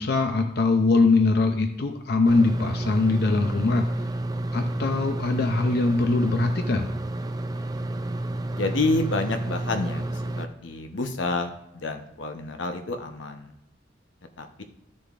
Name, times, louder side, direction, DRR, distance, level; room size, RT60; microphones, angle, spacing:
voice 1, 0.0-3.9 4.5-6.9, left 3 dB, 55° left, 5 dB, 0.5 m, -22 dB
sound 1, 2.3-10.5, right 1 dB, 20° right, 0.4 m, -30 dB
voice 2, 8.5-10.1 10.4-13.5 14.4-14.6, left 2 dB, 80° left, 6 dB, 0.9 m, -29 dB
12.5 x 6.7 x 2.5 m, 0.84 s
head